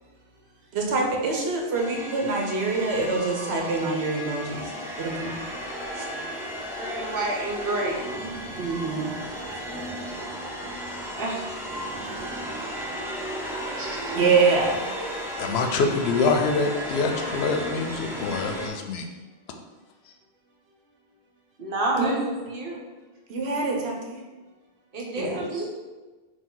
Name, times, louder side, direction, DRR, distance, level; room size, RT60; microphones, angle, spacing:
voice 1, 0.7-4.7 5.0-5.4 5.9-6.0 8.6-9.1 14.1-14.8 22.0-22.1 23.3-24.2 25.2-25.4, right 3 dB, 90° right, 0 dB, 1.0 m, -25 dB
sound 1, 1.7-18.7, equal, 5° right, 0.4 m, -34 dB
voice 2, 6.5-8.7 11.2-11.3 13.8-14.0 21.6-22.8 24.9-25.7, right 2 dB, 60° right, -2 dB, 1.0 m, -30 dB
voice 3, 15.4-19.1, left 4 dB, 80° left, 4 dB, 0.8 m, -25 dB
4.6 x 2.4 x 3.8 m, 1.2 s
omnidirectional pair, 1.1 m